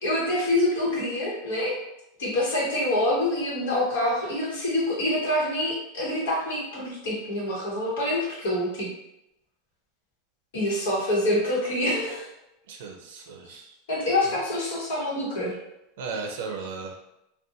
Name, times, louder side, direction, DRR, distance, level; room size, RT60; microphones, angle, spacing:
voice 1, 0.0-1.8 2.2-8.9 10.5-12.3 13.9-15.6, left 1 dB, 80° left, -5 dB, 1.1 m, -26 dB
voice 2, 12.7-13.7 14.2-14.3 16.0-17.0, right 4 dB, 65° right, 3 dB, 0.4 m, -36 dB
2.5 x 2.2 x 2.7 m, 0.86 s
supercardioid pair, 180°, 0 cm